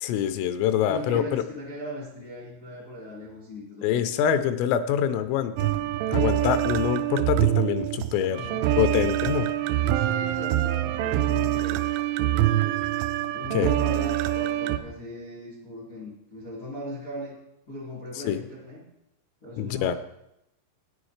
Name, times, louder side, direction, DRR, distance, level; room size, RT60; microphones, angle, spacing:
voice 1, 0.0-1.4 3.8-5.7 6.1-8.4 8.8-9.5 13.5-13.7 18.2-18.4 19.6-20.0, left 9 dB, 85° left, 10 dB, 3.3 m, -25 dB
voice 2, 0.9-4.3 8.2-8.8 9.8-11.8 12.2-12.8 13.3-17.4 17.7-18.9 19.4-19.9, left 1 dB, 70° left, -6 dB, 0.8 m, -38 dB
sound 1, 5.6-14.8, right 13 dB, 85° right, 2.8 m, -25 dB
13.5 x 9.5 x 3.2 m, 0.83 s
omnidirectional pair, 5.7 m